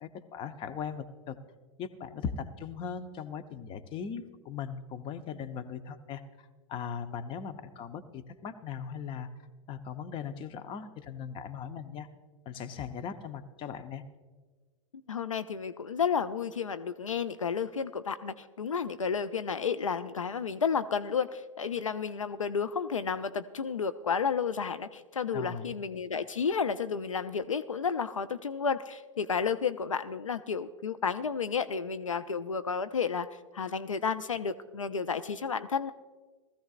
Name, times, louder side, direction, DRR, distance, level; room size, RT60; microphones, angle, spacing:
voice 1, 0.0-1.4 1.8-9.3 9.7-12.1 12.4-14.0 25.3-25.7, left 7 dB, 30° left, 10 dB, 0.8 m, -39 dB
voice 2, 15.1-33.3 33.5-35.9, left 6 dB, 80° left, 12 dB, 0.4 m, -31 dB
19.5 x 14.5 x 2.4 m, 1.4 s
figure-of-eight pair, 90°, 16 cm